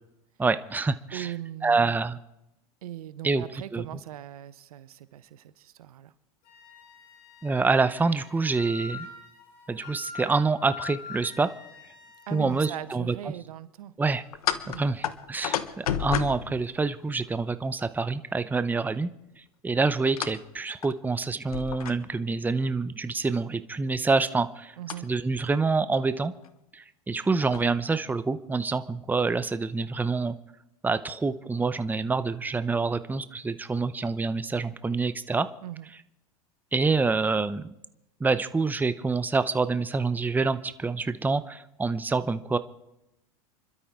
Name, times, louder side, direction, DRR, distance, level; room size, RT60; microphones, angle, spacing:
voice 1, 0.4-1.3 1.6-2.2 3.2-3.4 3.7-3.8 7.4-9.1 9.7-11.5 12.3-13.1 14.0-14.2 14.7-19.1 19.6-24.7 25.0-26.3 26.7-30.4 30.8-35.5 36.7-37.7 38.2-42.6, right 4 dB, 10° right, 13 dB, 0.7 m, -26 dB
voice 2, 1.1-2.0 2.8-6.1 12.3-13.9 14.6-14.9 24.8-25.1 35.6-35.9, right 12 dB, 80° right, 15 dB, 0.9 m, -39 dB
Wind instrument woodwind instrument, 6.5-12.8, left 5 dB, 50° left, 3.5 m, -44 dB
sound 1, 14.3-17.3 20.2-20.5 20.8-20.9 21.5-22.3 24.9-25.0 25.9-26.0 26.4-26.5 27.2-27.7, left 9 dB, 80° left, 1.1 m, -32 dB
28.5 x 12.5 x 3.7 m, 0.89 s
hypercardioid pair, 100°, 19 cm